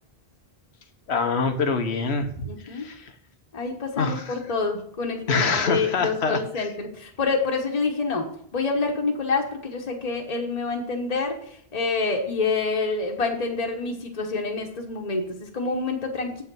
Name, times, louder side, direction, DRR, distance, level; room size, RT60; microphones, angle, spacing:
voice 1, 1.1-3.0 4.0-4.4 5.3-6.7, left 4 dB, 80° left, 8 dB, 1.2 m, -25 dB
voice 2, 2.4-2.9 3.5-8.3 8.5-16.4, left 4 dB, 40° left, 2 dB, 1.2 m, -27 dB
7.8 x 5.6 x 6.1 m, 0.66 s
omnidirectional pair, 1.1 m